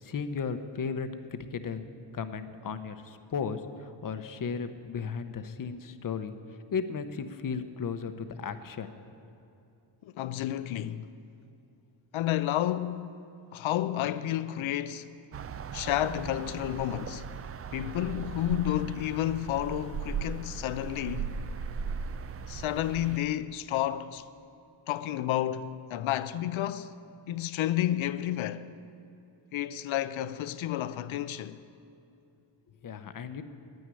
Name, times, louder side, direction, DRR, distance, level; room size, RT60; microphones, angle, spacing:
voice 1, 0.0-1.8 2.1-6.3 6.7-8.9 32.8-33.4, left 6 dB, 45° left, 0.8 m, -35 dB
voice 2, 10.0-11.1 12.1-13.2 13.5-15.1 15.7-17.3 17.7-21.4 22.5-24.2 24.9-26.9 27.3-28.7 29.5-31.6, left 12 dB, 80° left, 0.6 m, -31 dB
sound 1, 15.3-23.2, right 6 dB, 35° right, 0.4 m, -38 dB
9.7 x 9.4 x 9.7 m
cardioid pair, 110°, 46 cm